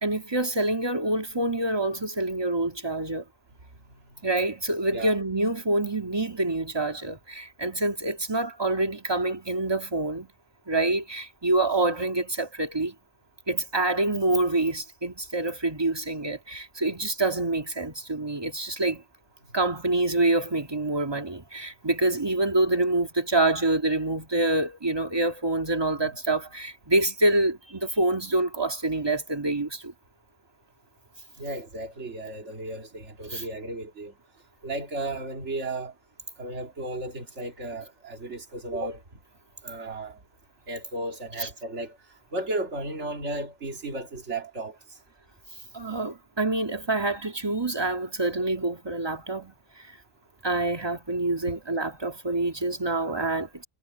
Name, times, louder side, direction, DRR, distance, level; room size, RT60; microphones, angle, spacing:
voice 1, 0.0-3.2 4.2-10.3 10.7-12.9 13.5-19.0 19.5-29.9 33.3-33.4 41.4-41.5 45.7-49.9 50.4-53.6, right 2 dB, 20° right, 1.8 m, -26 dB
voice 2, 3.9-4.2 4.9-5.2 26.0-26.2 31.4-34.1 34.6-35.9 36.4-39.0 39.6-40.2 40.7-42.0 42.3-45.0, right 2 dB, 60° right, 2.6 m, -34 dB
omnidirectional pair, 1.4 m